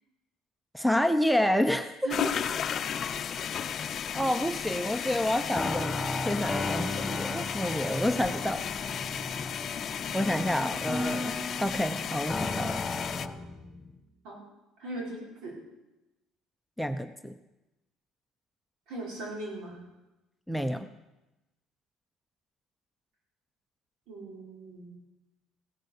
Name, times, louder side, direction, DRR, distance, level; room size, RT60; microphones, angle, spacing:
voice 1, 0.7-2.0 4.1-8.6 10.1-12.8 16.8-17.4 20.5-20.9, left 1 dB, ahead, 11 dB, 0.7 m, -29 dB
voice 2, 2.0-2.4 14.2-14.4 14.8-15.5 18.9-19.8 24.1-24.9, right 3 dB, 75° right, -2 dB, 5.4 m, -38 dB
sound 1, 2.1-13.3, left 8 dB, 45° left, 0.6 m, -34 dB
sound 2, 5.5-14.0, left 2 dB, 15° left, 1.7 m, -35 dB
16.0 x 9.1 x 6.7 m, 0.99 s
supercardioid pair, 95°, 0 cm